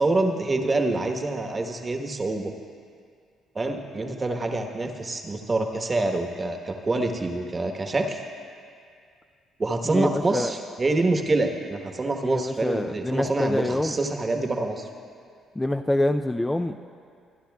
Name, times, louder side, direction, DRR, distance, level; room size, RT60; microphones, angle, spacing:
voice 1, 0.0-2.5 3.5-8.2 9.6-14.9, right 2 dB, 30° right, 4 dB, 1.2 m, -26 dB
voice 2, 9.9-10.5 12.2-14.0 15.6-16.8, left 1 dB, 15° left, 6 dB, 0.4 m, -26 dB
25.0 x 10.0 x 2.3 m, 2.2 s
supercardioid pair, 60°, 0 cm